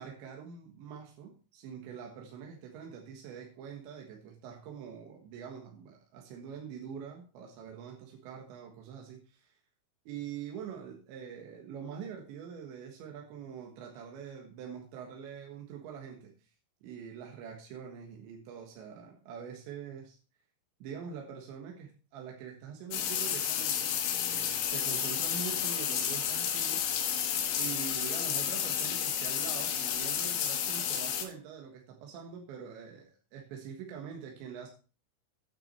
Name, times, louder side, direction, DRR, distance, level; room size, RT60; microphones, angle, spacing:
voice 1, 0.0-9.5 10.1-16.5 16.8-20.2 20.8-26.9 27.6-34.7, right 7 dB, 75° right, 1 dB, 3.7 m, -44 dB
sound 1, 22.9-31.3, left 9 dB, 80° left, 3.8 m, -31 dB
9.8 x 9.1 x 4.3 m, 0.35 s
omnidirectional pair, 5.4 m